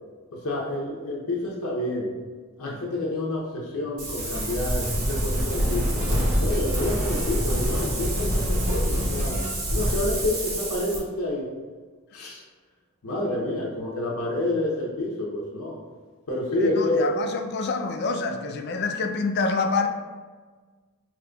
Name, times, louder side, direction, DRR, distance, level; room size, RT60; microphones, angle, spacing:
voice 1, 0.3-2.1 2.6-9.4 9.7-11.5 12.1-12.4 13.0-15.8 16.3-17.2, left 1 dB, 75° left, -3 dB, 0.7 m, -28 dB
Wind, 4.0-11.0, equal, 85° right, 1.0 m, -26 dB
sound 1, 4.2-9.5, equal, 35° right, 0.6 m, -37 dB
voice 2, 16.6-19.9, left 4 dB, 50° left, 5 dB, 0.3 m, -27 dB
5.0 x 2.9 x 2.3 m, 1.4 s
head